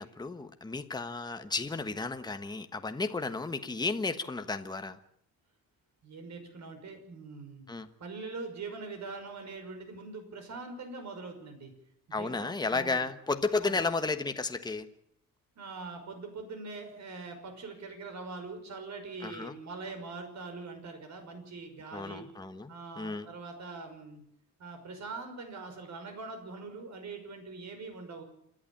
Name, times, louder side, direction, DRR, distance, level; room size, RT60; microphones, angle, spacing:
voice 1, 0.0-5.0 7.7-7.9 12.1-14.9 19.2-19.5 21.9-23.3, left 3 dB, 10° left, 8 dB, 1.2 m, -33 dB
voice 2, 6.0-7.7 8.0-11.7 12.1-13.1 13.6-13.9 15.6-22.3 22.7-24.2 24.6-28.2, right 3 dB, 55° right, 6 dB, 5.8 m, -43 dB
28.5 x 11.5 x 8.8 m, 0.71 s
cardioid pair, 125°, 34 cm